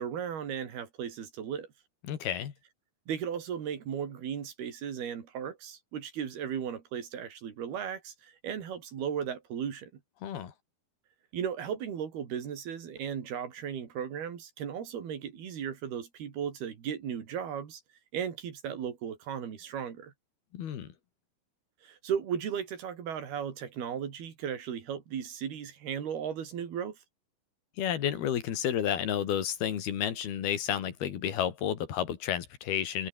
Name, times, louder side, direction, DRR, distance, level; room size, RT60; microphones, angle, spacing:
voice 1, 0.0-1.7 3.1-9.9 11.3-17.8 18.1-20.1 21.8-27.0, right 8 dB, 85° right, 5.1 m, -36 dB
voice 2, 2.1-2.5 10.2-10.5 20.5-20.9 27.8-33.1, left 9 dB, 85° left, 4.4 m, -31 dB
omnidirectional pair, 4.3 m